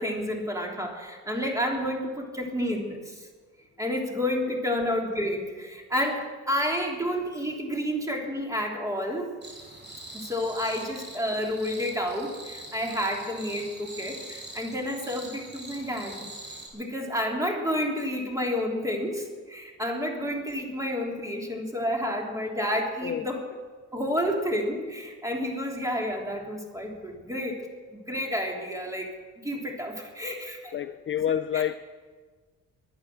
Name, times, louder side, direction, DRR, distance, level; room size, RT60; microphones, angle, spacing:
voice 1, 0.0-3.1 3.8-9.3 10.1-16.2 16.7-23.4 23.9-27.6 27.9-29.1 29.4-30.8 31.5-31.6, equal, 10° right, 3.4 m, -30 dB
sound 1, 9.4-16.7, right 1 dB, 35° right, 5.5 m, -43 dB
voice 2, 30.7-31.7, left 9 dB, 40° left, 0.5 m, -28 dB
23.0 x 8.8 x 6.4 m
cardioid pair, 90°, 30 cm